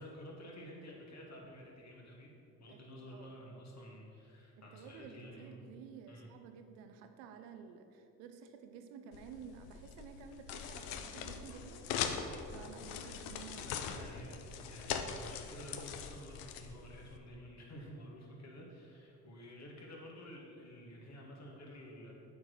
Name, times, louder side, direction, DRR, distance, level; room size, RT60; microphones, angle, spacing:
voice 1, 0.0-2.3 2.6-5.6 6.1-6.3 13.6-22.1, equal, 45° left, -1 dB, 2.2 m, -51 dB
voice 2, 4.7-12.1 12.5-13.8 14.2-14.3, right 6 dB, 80° right, 7 dB, 0.8 m, -52 dB
sound 1, 9.1-17.2, left 7 dB, 75° left, 0.7 m, -42 dB
8.1 x 4.7 x 6.4 m, 2.6 s
hypercardioid pair, 55°, 37 cm